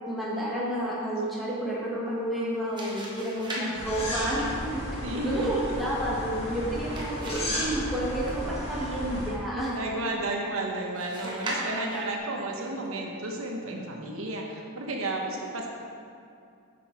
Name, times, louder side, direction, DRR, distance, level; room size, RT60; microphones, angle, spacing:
voice 1, 0.1-4.8 5.2-9.8 11.2-11.4 11.6-12.0 12.6-12.8, right 1 dB, ahead, -7 dB, 1.5 m, -31 dB
sound 1, 2.4-8.8 10.9-12.2, right 1 dB, 20° right, 1.1 m, -40 dB
sound 2, 3.8-9.3, left 1 dB, 30° left, 1.3 m, -34 dB
voice 2, 5.0-5.5 9.7-15.7, right 2 dB, 70° right, 0 dB, 0.9 m, -32 dB
7.7 x 6.1 x 4.7 m, 2.5 s
head